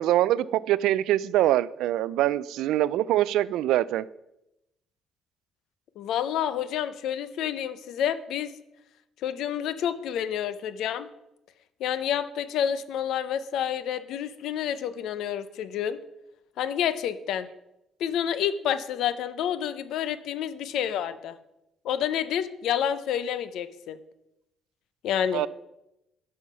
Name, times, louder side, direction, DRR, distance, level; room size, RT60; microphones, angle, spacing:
voice 1, 0.0-4.1 25.3-25.5, right 14 dB, 85° right, 19 dB, 0.3 m, -24 dB
voice 2, 6.0-8.5 9.2-11.1 11.8-16.0 16.6-17.5 18.0-21.3 21.8-24.0 25.0-25.4, left 9 dB, 70° left, 14 dB, 0.6 m, -29 dB
11.0 x 5.6 x 5.5 m, 0.89 s
cardioid pair, 165°, 0 cm